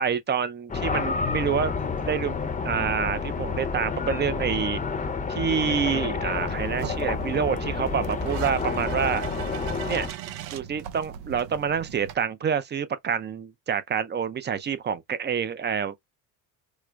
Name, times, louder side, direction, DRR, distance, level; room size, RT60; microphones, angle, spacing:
voice 1, 0.0-4.8 5.3-9.2 9.9-10.1 10.5-15.9, right 7 dB, 25° right, 0.4 m, -27 dB
sound 1, 0.7-10.1, left 5 dB, 20° left, 0.6 m, -29 dB
sound 2, 6.3-12.2, right 11 dB, 80° right, 0.7 m, -38 dB
4.7 x 2.0 x 2.3 m
supercardioid pair, 90°, 42 cm